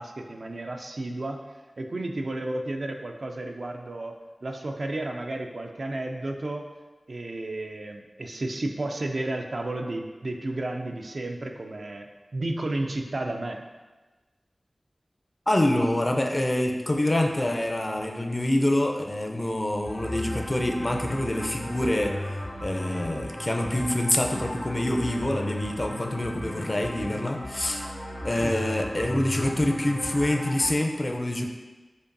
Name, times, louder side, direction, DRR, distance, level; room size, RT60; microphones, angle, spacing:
voice 1, 0.0-1.4 1.8-6.7 7.1-12.1 12.3-13.6 28.4-28.5, right 2 dB, 70° right, 3 dB, 0.3 m, -32 dB
voice 2, 15.5-22.2 22.6-27.8 28.2-31.4, left 1 dB, 40° left, 2 dB, 0.4 m, -26 dB
sound 1, 19.8-30.7, left 1 dB, 65° left, 0.9 m, -35 dB
5.1 x 2.2 x 2.5 m, 1.2 s
cardioid pair, 40°, 0 cm